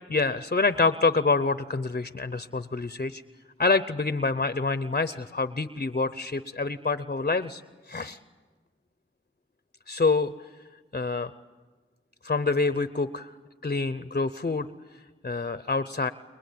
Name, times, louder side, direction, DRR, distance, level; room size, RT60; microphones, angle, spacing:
voice 1, 0.1-3.2 3.6-7.6 7.9-8.2 9.9-10.3 10.9-11.3 12.2-13.3 13.6-14.7 15.2-16.1, left 3 dB, 45° left, 12 dB, 0.7 m, -26 dB
29.0 x 22.5 x 8.6 m, 1.4 s
wide cardioid pair, 45°, 21 cm